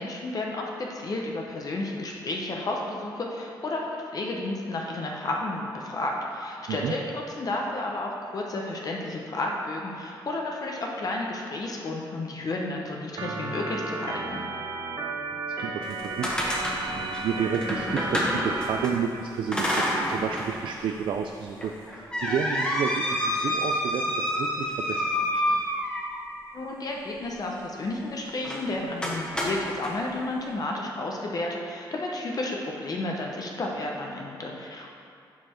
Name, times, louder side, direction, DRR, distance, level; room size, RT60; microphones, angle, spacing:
voice 1, 0.0-14.4 26.5-34.9, left 2 dB, 45° left, -1 dB, 0.8 m, -32 dB
Organ, 13.2-18.9, right 3 dB, 55° right, 0.8 m, -34 dB
voice 2, 15.6-25.6, right 7 dB, 75° right, 4 dB, 0.4 m, -31 dB
sound 1, 15.8-18.9 19.5-20.5 20.9-21.0 21.6-26.3 28.4-28.6 29.0-29.9, equal, 10° left, 1.3 m, -28 dB
7.2 x 4.5 x 4.4 m, 2.4 s
cardioid pair, 80°, 8 cm